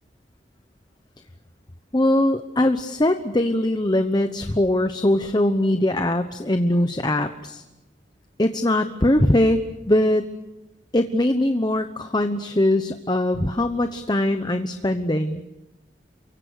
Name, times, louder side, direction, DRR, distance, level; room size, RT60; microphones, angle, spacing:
voice 1, 1.9-7.6 8.4-9.6 9.9-10.3 10.9-15.4, left 1 dB, 25° left, 8 dB, 1.0 m, -21 dB
29.0 x 24.0 x 6.7 m, 0.99 s
head